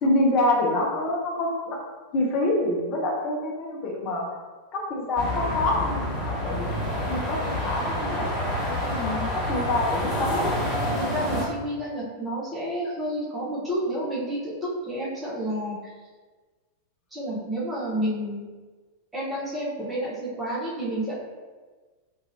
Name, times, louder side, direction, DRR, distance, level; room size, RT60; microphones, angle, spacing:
voice 1, 0.0-1.8 2.1-4.3 4.7-6.8 7.1-10.5, left 2 dB, 35° left, -2 dB, 0.6 m, -26 dB
sound 1, 5.2-11.4, equal, 10° left, 1.4 m, -28 dB
voice 2, 11.0-15.8 17.1-18.5 19.1-21.1, right 1 dB, 15° right, -8 dB, 0.9 m, -30 dB
3.0 x 2.5 x 2.7 m, 1.4 s
figure-of-eight pair, 90°, 0 cm